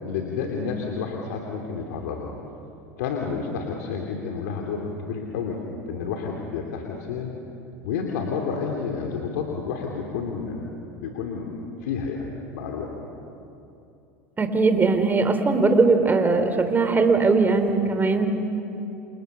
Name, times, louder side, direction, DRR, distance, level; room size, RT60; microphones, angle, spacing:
voice 1, 0.0-2.3 3.0-5.6 5.9-7.3 7.8-10.6 11.0-11.5 11.8-12.2 12.5-12.9, left 5 dB, 75° left, 1 dB, 3.1 m, -30 dB
voice 2, 14.4-18.3, right 3 dB, 20° right, 7 dB, 3.7 m, -20 dB
29.0 x 29.0 x 7.0 m, 2.8 s
hypercardioid pair, 90°, 9 cm